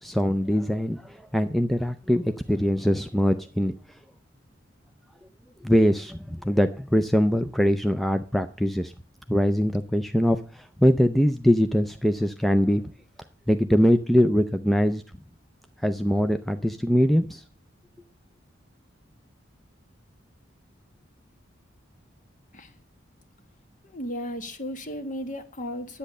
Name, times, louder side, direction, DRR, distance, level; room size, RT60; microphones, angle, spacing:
voice 1, 0.0-3.7 5.6-8.9 9.3-12.8 13.5-15.0 15.8-17.4, equal, ahead, 0.5 m, -22 dB
voice 2, 23.8-26.0, equal, 40° left, 1.4 m, -35 dB
10.5 x 8.5 x 6.6 m
head